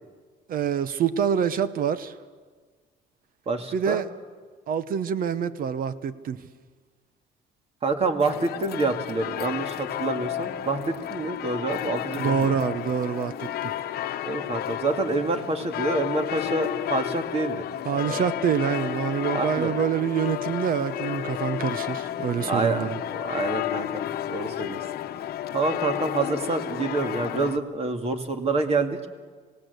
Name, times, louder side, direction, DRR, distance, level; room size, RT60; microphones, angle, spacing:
voice 1, 0.5-2.1 3.7-4.1 4.7-6.4 12.2-13.7 17.8-23.0, right 8 dB, 55° right, 1.0 m, -26 dB
voice 2, 3.5-4.1 7.8-12.5 14.3-17.7 18.0-18.2 19.3-19.8 22.4-24.8 25.5-29.0, right 3 dB, 35° right, 2.2 m, -27 dB
sound 1, 8.2-27.6, left 12 dB, 65° left, 1.0 m, -32 dB
26.0 x 17.5 x 8.1 m
cardioid pair, 110°, 17 cm